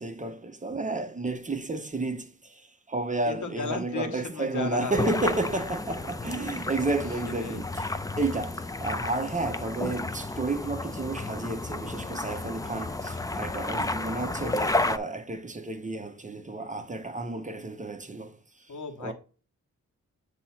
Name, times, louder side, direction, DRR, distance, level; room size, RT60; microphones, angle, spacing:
voice 1, 0.0-7.9 8.2-18.3 19.0-19.1, right 2 dB, 25° right, 0.7 m, -31 dB
voice 2, 3.2-5.1 7.4-7.6 18.7-19.1, left 4 dB, 70° left, 1.3 m, -35 dB
sound 1, 4.9-15.0, left 2 dB, 10° left, 0.4 m, -32 dB
8.2 x 2.8 x 5.8 m
wide cardioid pair, 150°, 31 cm